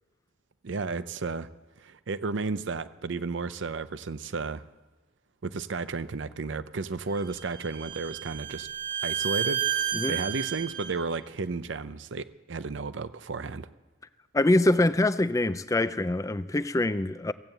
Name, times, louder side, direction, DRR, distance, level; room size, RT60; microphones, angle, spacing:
voice 1, 0.6-1.5 1.8-4.6 5.4-8.7 9.0-13.7, right 4 dB, 70° right, 14 dB, 0.6 m, -33 dB
Bowed string instrument, 7.1-10.9, right 9 dB, 40° right, 1.8 m, -31 dB
voice 2, 14.3-17.3, left 2 dB, 15° left, 14 dB, 0.4 m, -24 dB
16.5 x 9.0 x 7.9 m, 1.3 s
head